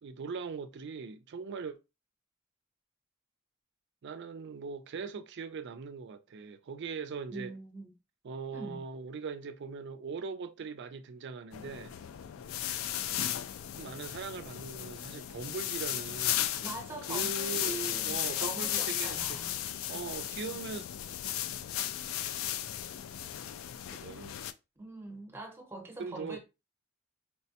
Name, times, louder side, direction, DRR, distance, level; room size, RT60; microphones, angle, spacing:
voice 1, 0.0-1.8 4.0-7.6 8.2-11.9 13.8-16.4 17.1-17.8 18.0-19.4 19.9-20.9 23.9-24.4 26.0-26.4, right 5 dB, 55° right, 0.4 m, -40 dB
voice 2, 7.3-7.9 8.5-8.8 16.6-19.5 24.1-24.3 24.8-26.4, right 2 dB, 10° right, 0.8 m, -43 dB
sound 1, 11.5-24.5, left 11 dB, 65° left, 0.3 m, -35 dB
4.4 x 2.1 x 2.8 m
head